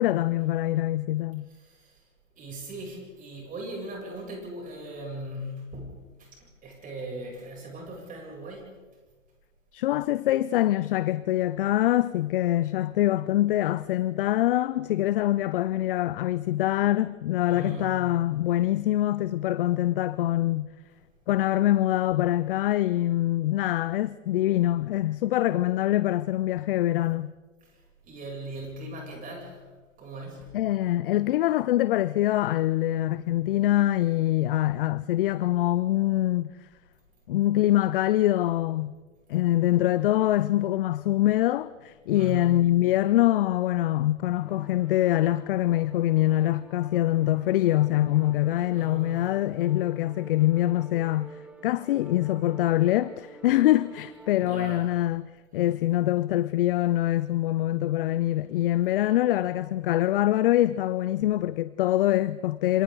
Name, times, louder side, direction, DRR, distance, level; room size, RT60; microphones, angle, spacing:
voice 1, 0.0-1.5 9.7-20.7 21.3-27.3 30.5-36.5 37.3-38.9 39.3-62.8, left 14 dB, 45° left, 0.6 m, -24 dB
voice 2, 1.5-2.1 2.4-8.8 17.5-18.1 27.6-29.7 30.0-30.6 42.1-42.7 48.7-49.3 54.4-54.8, right 1 dB, 20° right, 7.8 m, -39 dB
sound 1, 44.4-54.6, right 2 dB, 5° right, 1.5 m, -49 dB
27.5 x 27.0 x 4.0 m
hypercardioid pair, 120°, 39 cm